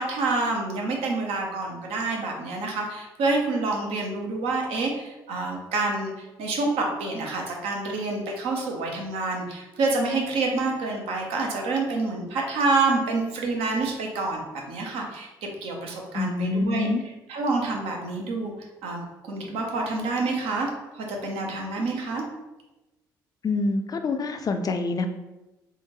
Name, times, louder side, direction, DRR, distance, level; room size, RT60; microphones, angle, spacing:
voice 1, 0.0-14.4 14.7-15.3 15.6-16.9 17.3-18.5 18.8-20.7 20.9-22.2, right 3 dB, 65° right, 1 dB, 0.7 m, -27 dB
voice 2, 16.1-17.0 23.4-25.1, left 3 dB, 35° left, 7 dB, 0.4 m, -26 dB
3.6 x 2.3 x 2.9 m, 1.0 s
hypercardioid pair, 50°, 11 cm